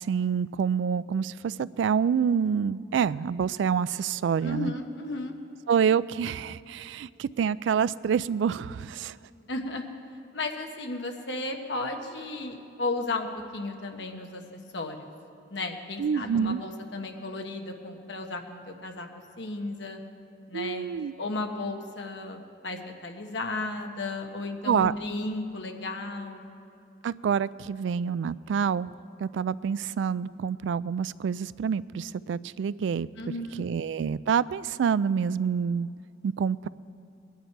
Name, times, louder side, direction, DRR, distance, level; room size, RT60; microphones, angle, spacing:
voice 1, 0.0-4.7 5.7-9.2 16.0-16.6 20.5-21.1 24.6-24.9 27.0-28.9 29.2-33.1 33.6-35.9 36.2-36.7, right 7 dB, 85° right, 18 dB, 0.3 m, -27 dB
voice 2, 4.4-5.3 9.5-9.9 10.3-13.3 13.5-14.4 14.7-15.1 15.5-19.1 19.4-20.0 20.5-20.9 21.2-26.5 33.2-33.7, left 2 dB, 80° left, 4 dB, 1.2 m, -34 dB
20.5 x 10.5 x 4.6 m, 2.5 s
head